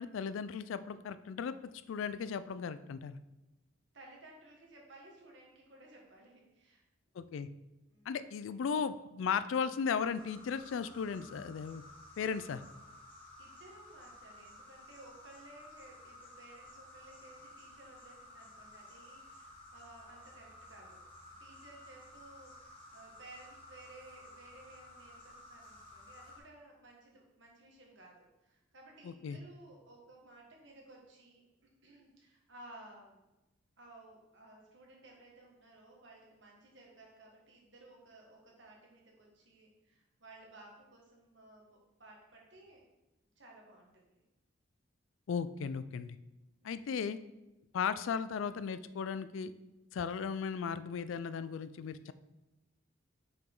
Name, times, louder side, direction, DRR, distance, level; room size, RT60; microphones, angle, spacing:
voice 1, 0.0-1.6 1.9-3.2 7.2-7.5 8.1-11.8 12.2-12.6 29.0-29.4 45.3-46.2 46.6-47.2 47.7-49.5 49.9-52.1, left 6 dB, 75° left, 14 dB, 0.3 m, -36 dB
voice 2, 3.9-6.8 7.9-8.3 13.4-21.0 21.4-31.4 31.8-33.2 33.8-42.8 43.4-44.2, right 2 dB, 65° right, -1 dB, 1.5 m, -57 dB
sound 1, 10.1-26.4, left 1 dB, 25° left, 1.8 m, -54 dB
5.9 x 5.0 x 3.8 m, 1.0 s
head